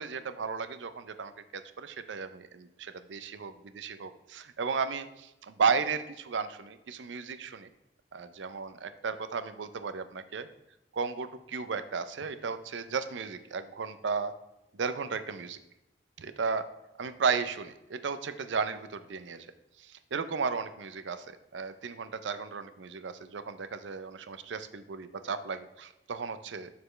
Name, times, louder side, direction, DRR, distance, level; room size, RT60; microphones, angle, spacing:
voice 1, 0.0-7.7 8.1-10.5 10.9-14.3 14.7-15.6 16.2-16.6 17.0-19.5 19.8-26.7, right 5 dB, 80° right, 11 dB, 0.5 m, -34 dB
6.8 x 6.6 x 3.2 m, 0.92 s
head